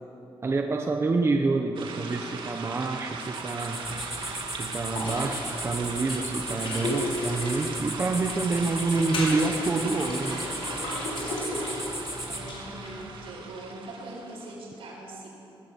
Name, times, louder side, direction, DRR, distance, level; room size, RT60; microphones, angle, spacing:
voice 1, 0.4-4.0 4.5-10.5, right 3 dB, 30° right, 3 dB, 1.1 m, -27 dB
sound 1, 1.8-14.5, right 4 dB, 60° right, 2.5 m, -39 dB
sound 2, 3.2-12.4, right 1 dB, 5° right, 2.3 m, -37 dB
sound 3, 3.8-13.1, left 2 dB, 70° left, 6.5 m, -35 dB
voice 2, 12.3-15.3, right 2 dB, 80° right, -3 dB, 7.3 m, -42 dB
21.5 x 16.5 x 8.5 m, 2.9 s
wide cardioid pair, 160°, 9 cm